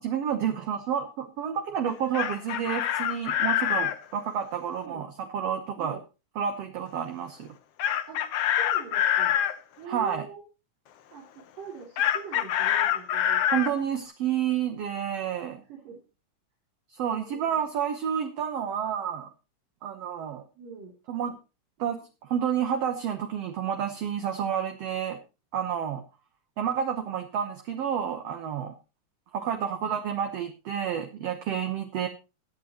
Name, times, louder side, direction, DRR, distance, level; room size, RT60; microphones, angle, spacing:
voice 1, 0.0-6.0 6.3-7.5 9.8-10.3 13.5-15.6 16.9-19.3 19.8-20.4 21.1-21.4 21.8-25.2 25.5-26.0 26.6-28.7 29.3-32.1, right 8 dB, 60° right, 5 dB, 1.8 m, -30 dB
Chicken rooster, 1.9-4.0 7.8-9.5 12.0-13.7, left 10 dB, 70° left, 1.5 m, -25 dB
voice 2, 8.6-9.3 9.8-10.4 11.1-13.6 15.7-16.0 17.1-17.6 20.6-20.9 29.5-29.8, right 6 dB, 85° right, -3 dB, 4.6 m, -43 dB
22.0 x 8.3 x 2.9 m, 0.30 s
omnidirectional pair, 3.7 m